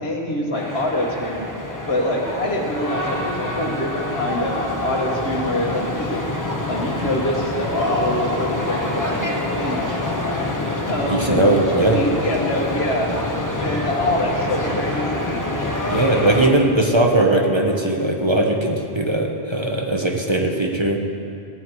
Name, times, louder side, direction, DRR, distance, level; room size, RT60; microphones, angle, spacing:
voice 1, 0.0-1.5 1.9-4.6 4.8-6.2 6.7-10.0 10.8-11.6 11.9-13.1 13.6-15.4, left 1 dB, 90° left, -1 dB, 1.9 m, -25 dB
sound 1, 0.5-16.5, left 2 dB, 20° left, 1.1 m, -26 dB
voice 2, 11.1-12.0 15.9-21.0, right 1 dB, 30° right, 1 dB, 1.1 m, -19 dB
16.5 x 9.3 x 4.8 m, 2.6 s
omnidirectional pair, 1.0 m